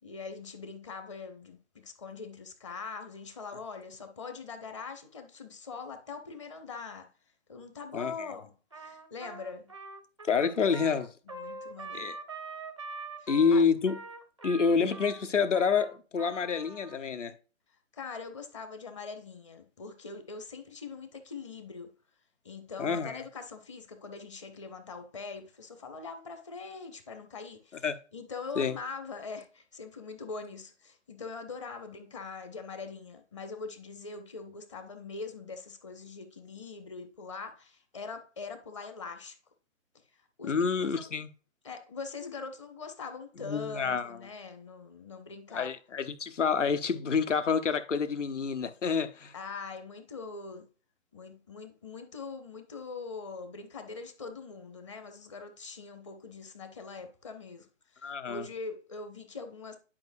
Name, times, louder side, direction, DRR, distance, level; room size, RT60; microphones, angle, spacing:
voice 1, 0.0-7.1 7.5-9.7 11.3-12.1 13.2-13.6 17.9-21.9 22.4-27.8 28.1-39.4 40.4-41.1 41.6-45.7 49.3-50.7 51.1-57.7 57.9-59.8, left 4 dB, 25° left, 0.7 m, -42 dB
voice 2, 7.9-8.3 10.3-11.1 11.9-12.2 13.3-14.0 14.4-17.3 22.8-23.2 27.8-28.0 28.6-28.7 40.4-41.3 43.4-44.2 45.5-49.3 58.0-58.4, left 5 dB, 65° left, 1.2 m, -28 dB
Trumpet, 8.7-17.0, right 3 dB, 25° right, 0.4 m, -44 dB
10.5 x 4.9 x 2.7 m
figure-of-eight pair, 140°, 40 cm